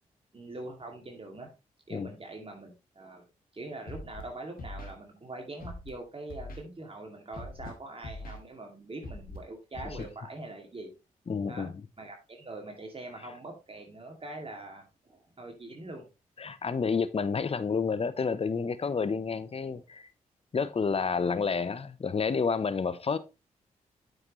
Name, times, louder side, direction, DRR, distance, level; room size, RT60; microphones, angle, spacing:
voice 1, 0.3-1.5 1.9-3.2 3.5-10.9 11.5-11.7 12.0-16.1, right 2 dB, 40° right, 2.4 m, -43 dB
Scratching (performance technique), 3.9-4.2 4.6-4.9 5.6-5.9 6.3-6.6 7.3-7.7 8.0-8.4 9.0-9.4 9.7-10.0, left 2 dB, 70° left, 2.4 m, -41 dB
voice 2, 11.3-11.7 16.4-20.1 20.5-23.2, left 5 dB, 40° left, 0.8 m, -29 dB
8.9 x 6.4 x 3.1 m
supercardioid pair, 45°, 15 cm